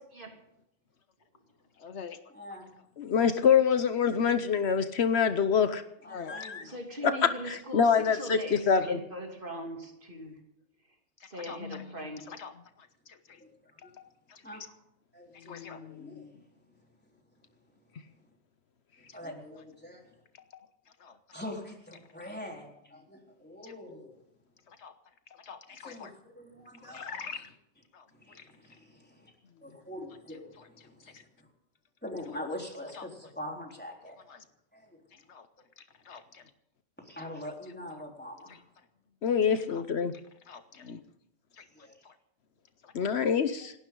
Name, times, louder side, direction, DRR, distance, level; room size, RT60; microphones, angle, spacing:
voice 1, 1.8-2.2 4.0-4.3 6.1-6.5 8.1-8.2 8.8-8.9 11.2-13.4 14.0-14.7 15.3-16.4 19.1-19.2 20.5-20.7 21.0-21.2 23.6-23.7 24.7-24.9 25.3-26.1 26.8-27.5 27.9-28.5 29.4-29.8 30.6-30.7 31.1-31.2 32.9-33.1 34.3-34.4 35.1-35.5 35.8-36.5 37.2-37.3 37.9-38.0 38.5-38.6 39.5-39.8 40.4-41.0 41.5-41.6 42.0-42.2 42.8-43.1, left 6 dB, 90° left, 10 dB, 1.4 m, -46 dB
voice 2, 2.3-2.7 6.0-6.7 13.4-13.9 14.4-14.6 15.1-16.3 19.0-20.1 21.3-24.1 25.7-27.1 28.1-29.3 29.6-31.5 32.0-34.2 34.7-35.0 37.0-38.6 41.7-41.9, left 1 dB, 10° left, 0 dB, 3.8 m, -44 dB
voice 3, 3.0-5.8 6.3-6.6 7.0-7.1 7.7-9.0 39.2-40.1 42.9-43.7, left 7 dB, 70° left, 10 dB, 1.1 m, -25 dB
voice 4, 6.6-10.4 10.9-11.0 11.3-12.5, equal, 50° right, 2 dB, 3.1 m, -41 dB
28.0 x 12.0 x 3.9 m, 0.78 s
omnidirectional pair, 1.1 m